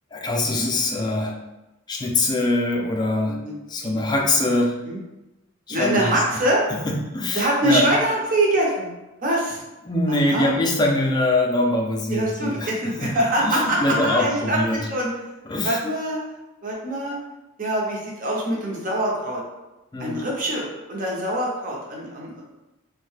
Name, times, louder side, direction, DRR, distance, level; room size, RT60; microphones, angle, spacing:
voice 1, 0.1-1.4 1.9-4.8 5.7-6.4 6.7-7.9 9.8-12.7 13.0-13.1 13.4-14.9 15.5-15.8 19.9-20.2, left 2 dB, 20° left, 0 dB, 0.3 m, -23 dB
voice 2, 5.7-6.6 7.3-8.9 9.2-9.6 10.1-10.5 12.1-15.1 15.6-16.2 16.6-17.2 17.6-19.4 20.0-22.4, right 1 dB, 40° right, -2 dB, 0.6 m, -24 dB
2.6 x 2.1 x 3.1 m, 1.0 s
head